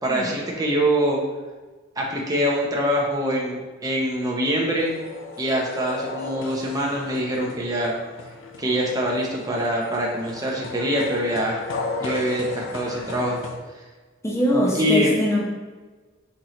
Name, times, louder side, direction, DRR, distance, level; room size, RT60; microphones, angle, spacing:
voice 1, 0.0-1.2 2.0-4.9 5.4-7.9 8.6-11.6 12.0-13.4 14.7-15.1, equal, 20° right, -2 dB, 0.6 m, -24 dB
sound 1, 4.8-13.6, left 2 dB, 70° left, 0.6 m, -35 dB
voice 2, 14.2-15.4, equal, 15° left, -3 dB, 0.9 m, -22 dB
4.3 x 3.1 x 3.8 m, 1.3 s
head